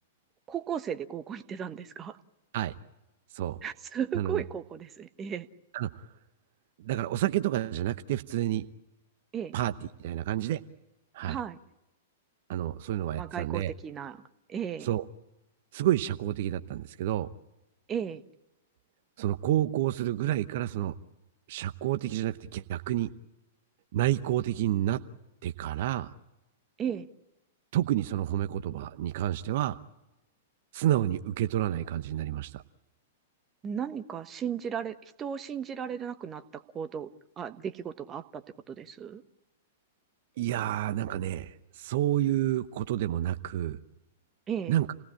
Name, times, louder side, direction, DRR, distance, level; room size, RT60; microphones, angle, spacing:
voice 1, 0.5-2.2 3.6-5.5 9.3-9.5 11.3-11.6 13.2-14.2 14.5-14.9 17.9-18.2 26.8-27.1 33.6-39.2 44.5-44.8, right 8 dB, 25° right, 10 dB, 1.2 m, -35 dB
voice 2, 5.7-6.1 6.8-8.7 9.5-9.7 10.0-10.6 11.1-11.4 12.5-13.7 14.8-15.0 15.7-17.3 19.2-20.9 21.5-23.1 23.9-25.0 25.4-26.1 27.7-29.8 30.7-32.6 40.4-43.8 44.7-44.9, right 13 dB, 55° right, 10 dB, 0.8 m, -29 dB
28.5 x 18.0 x 8.8 m, 0.97 s
figure-of-eight pair, 105°, 0 cm